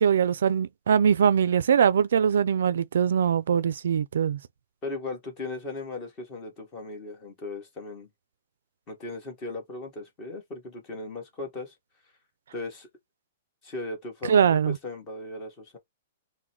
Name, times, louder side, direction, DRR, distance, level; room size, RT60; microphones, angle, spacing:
voice 1, 0.0-4.4 14.3-14.8, right 7 dB, 75° right, 0.3 m, -22 dB
voice 2, 4.8-8.1 8.9-11.7 12.5-12.9 13.6-15.8, left 2 dB, 20° left, 1.4 m, -37 dB
3.7 x 2.2 x 4.3 m
hypercardioid pair, 170°, 0 cm